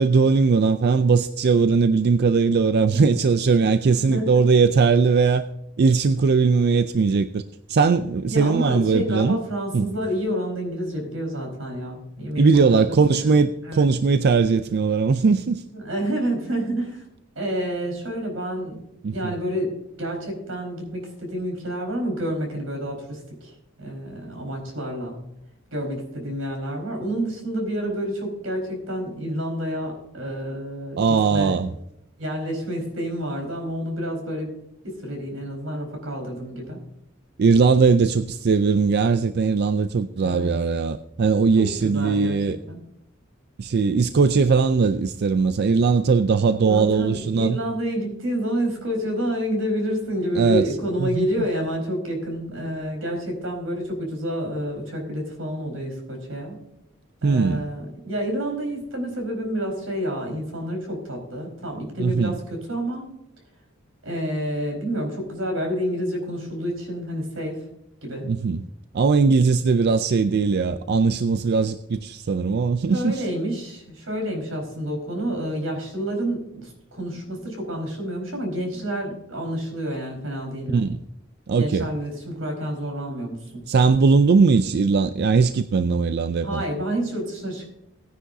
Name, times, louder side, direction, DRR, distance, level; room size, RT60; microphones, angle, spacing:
voice 1, 0.0-5.4 5.8-7.4 7.7-9.4 9.7-9.9 12.4-15.6 19.0-19.3 31.0-31.7 37.4-42.6 43.6-47.6 50.3-50.7 51.0-51.3 57.2-57.6 62.0-62.4 68.2-68.6 68.9-73.2 80.7-81.0 81.5-81.9 83.7-86.6, right 4 dB, 50° right, 0.4 m, -19 dB
voice 2, 8.3-12.8 13.1-13.2 13.6-13.9 15.7-17.0 17.3-18.8 19.1-19.7 20.0-23.5 23.8-25.2 25.7-31.6 32.2-34.5 34.8-36.8 40.2-40.5 41.6-42.8 46.7-56.6 57.2-63.1 64.0-67.6 68.0-68.3 72.9-80.9 81.6-83.6 86.4-87.7, equal, 90° right, 4.6 m, -29 dB
17.5 x 9.9 x 2.7 m
head